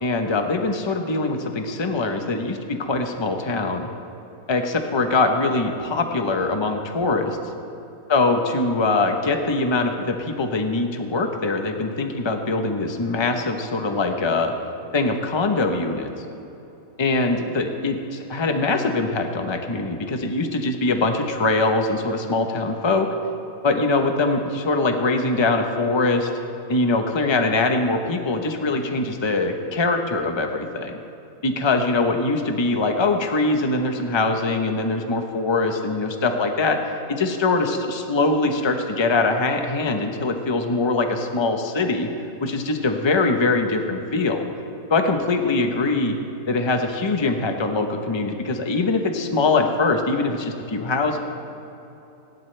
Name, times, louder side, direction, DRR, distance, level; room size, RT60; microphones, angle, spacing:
voice 1, 0.0-3.9 4.5-7.4 8.1-14.5 14.9-16.1 17.0-23.1 23.6-26.3 26.7-31.0 31.4-36.8 37.1-42.1 42.4-44.4 44.9-46.2 46.5-51.2, left 3 dB, 20° left, 4 dB, 0.9 m, -22 dB
27.0 x 12.0 x 3.4 m, 3.0 s
omnidirectional pair, 1.7 m